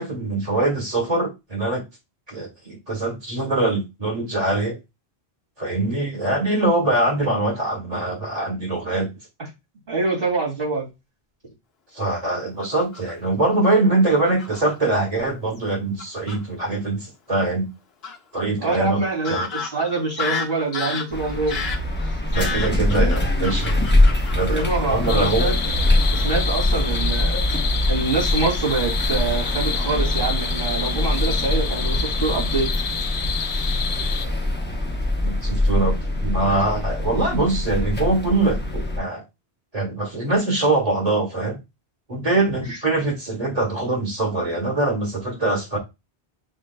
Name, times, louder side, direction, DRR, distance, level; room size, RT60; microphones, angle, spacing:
voice 1, 0.0-1.8 2.3-4.8 5.6-9.1 11.9-17.7 18.3-19.0 19.3-19.5 22.3-23.8 24.3-25.5 35.2-39.2 39.7-41.6 42.1-45.8, right 2 dB, 40° right, 1.8 m, -23 dB
voice 2, 9.9-10.9 18.6-21.6 24.4-25.6 26.1-27.4 27.9-32.7 33.5-33.8 42.7-42.8, right 3 dB, 65° right, 2.7 m, -25 dB
Fowl / Bird vocalization bird call bird song, 12.6-13.3 14.1-14.7 15.6-15.7 16.0-16.4 18.0-18.2 18.7-18.8 19.2-25.2 25.4-25.7 26.0-26.3 26.6-26.8, left 5 dB, 75° left, 1.1 m, -32 dB
sound 1, 21.1-39.0, left 1 dB, 10° left, 0.7 m, -23 dB
sound 2, 25.1-34.2, left 6 dB, 50° left, 0.5 m, -29 dB
6.5 x 2.8 x 2.2 m
omnidirectional pair, 1.0 m